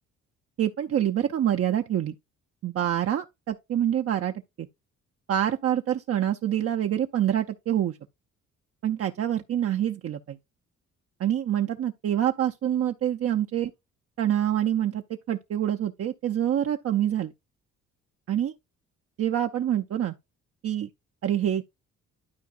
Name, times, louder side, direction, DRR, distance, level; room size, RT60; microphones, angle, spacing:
voice 1, 0.6-2.2 2.6-4.7 5.3-8.0 8.8-10.4 11.2-13.7 14.2-15.0 15.3-17.3 18.3-18.5 19.2-20.1 20.6-20.9 21.2-21.6, right 10 dB, 50° right, 0.6 m, -26 dB
12.5 x 4.6 x 2.4 m
cardioid pair, 90°, 30 cm